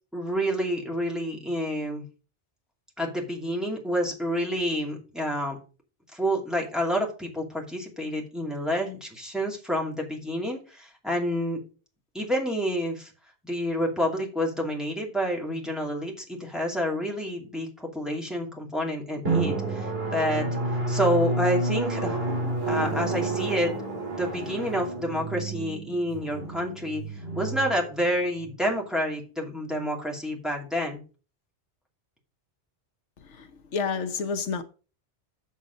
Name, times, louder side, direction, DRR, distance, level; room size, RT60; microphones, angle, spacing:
voice 1, 0.1-2.0 3.0-5.6 6.1-11.6 12.1-13.1 13.4-20.5 20.9-22.2 22.7-23.7 24.1-27.0 27.3-31.0, equal, ahead, 2.4 m, -28 dB
Drum, 19.2-28.5, right 2 dB, 55° right, 3.4 m, -30 dB
voice 2, 33.7-34.6, left 5 dB, 85° left, 1.3 m, -29 dB
7.3 x 7.2 x 3.9 m
omnidirectional pair, 1.2 m